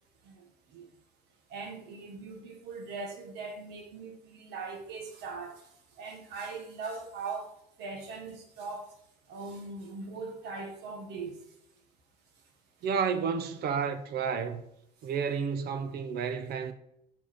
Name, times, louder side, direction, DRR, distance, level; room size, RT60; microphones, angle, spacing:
voice 1, 0.2-0.9 1.5-5.7 6.0-7.5 7.8-8.9 9.3-11.4, right 4 dB, 85° right, 1.6 m, -40 dB
voice 2, 12.8-14.6 15.0-16.7, right 6 dB, 70° right, 0.8 m, -31 dB
5.4 x 4.9 x 4.4 m
cardioid pair, 110°, 17 cm